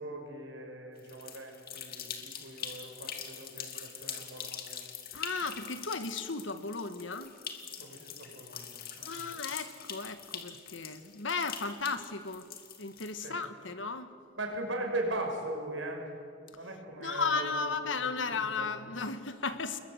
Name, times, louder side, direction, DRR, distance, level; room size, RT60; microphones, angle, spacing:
voice 1, 0.0-4.8 7.8-9.4 13.2-13.4 14.4-16.1 16.5-17.7 18.0-18.8, right 1 dB, 75° right, 2 dB, 6.0 m, -39 dB
sound 1, 1.0-13.4, left 8 dB, 50° left, 2.5 m, -43 dB
voice 2, 5.1-7.3 9.1-12.5 12.8-14.1 17.0-19.8, left 4 dB, 75° left, 10 dB, 1.6 m, -35 dB
28.5 x 21.5 x 8.0 m, 2.3 s
head